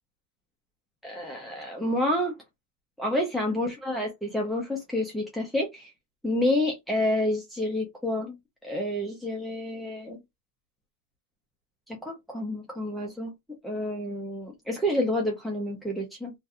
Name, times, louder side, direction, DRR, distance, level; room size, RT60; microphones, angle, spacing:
voice 1, 1.0-2.3 3.0-5.9 6.2-8.4 8.6-10.2 11.9-13.3 13.6-16.3, left 1 dB, ahead, 0.4 m, -29 dB
2.3 x 2.2 x 2.6 m
supercardioid pair, 180°, 0 cm